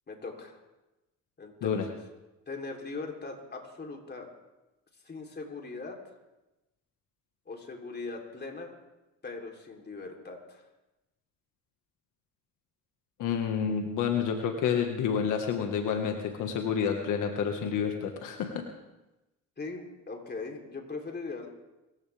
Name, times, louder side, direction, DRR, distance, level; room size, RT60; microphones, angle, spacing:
voice 1, 0.1-0.6 1.4-2.0 2.5-4.3 5.0-6.0 7.5-8.7 9.2-10.6 19.6-21.5, left 3 dB, 35° left, 1 dB, 3.5 m, -40 dB
voice 2, 13.2-18.6, left 7 dB, 85° left, 4 dB, 1.7 m, -29 dB
25.0 x 15.0 x 3.5 m, 1.0 s
cardioid pair, 90°, 30 cm